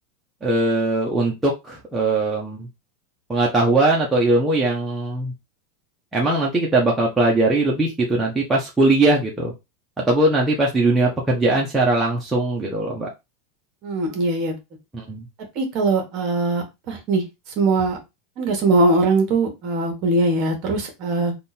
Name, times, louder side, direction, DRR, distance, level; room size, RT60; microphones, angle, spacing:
voice 1, 0.4-2.7 3.3-5.3 6.1-9.5 10.1-13.1 14.9-15.3, right 2 dB, 10° right, -3 dB, 0.8 m, -20 dB
voice 2, 13.8-14.5 15.5-17.2 17.6-18.0 18.4-21.3, right 2 dB, 35° right, 3 dB, 1.4 m, -21 dB
3.7 x 2.5 x 4.2 m, 0.23 s
supercardioid pair, 160°, 0 cm